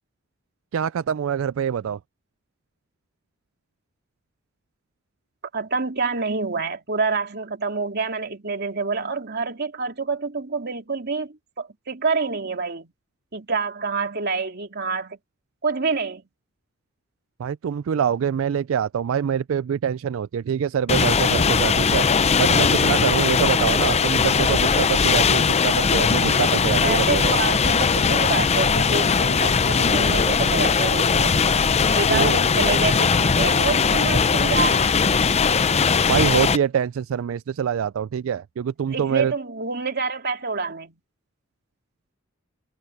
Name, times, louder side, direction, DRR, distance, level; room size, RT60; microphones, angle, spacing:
voice 1, 0.7-2.0 17.4-22.1 22.4-27.3 32.1-32.4 36.1-39.3, right 8 dB, 75° right, 0.4 m, -25 dB
voice 2, 5.5-12.9 13.3-15.2 15.6-16.2 26.2-26.4 26.8-31.4 31.9-35.0 38.9-41.0, right 4 dB, 55° right, 3.1 m, -27 dB
sound 1, 20.9-36.6, left 5 dB, 30° left, 0.6 m, -19 dB
head